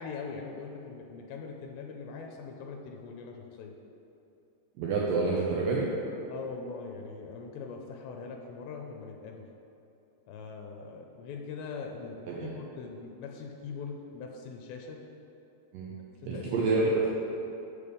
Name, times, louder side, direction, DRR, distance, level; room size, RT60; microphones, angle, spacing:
voice 1, 0.0-3.7 6.3-9.4 10.3-15.0 15.9-16.0 16.3-16.5, left 5 dB, 90° left, 1 dB, 2.8 m, -41 dB
voice 2, 4.8-5.9 12.3-12.5 15.7-15.9 16.3-17.1, right 3 dB, 85° right, -4 dB, 1.9 m, -28 dB
7.1 x 6.9 x 5.0 m, 2.8 s
omnidirectional pair, 5.0 m